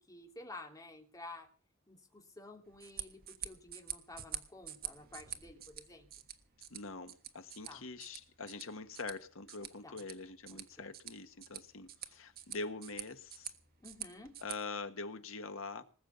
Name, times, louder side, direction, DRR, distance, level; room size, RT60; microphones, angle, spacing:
voice 1, 0.1-1.5 1.9-6.3 7.7-7.8 9.8-10.0 10.5-10.9 13.8-14.3, left 2 dB, 20° left, 2.9 m, -52 dB
sound 1, 2.7-14.6, right 11 dB, 50° right, 1.4 m, -48 dB
voice 2, 6.7-13.5 14.4-15.8, left 3 dB, 75° left, 1.5 m, -44 dB
20.0 x 7.2 x 8.2 m
head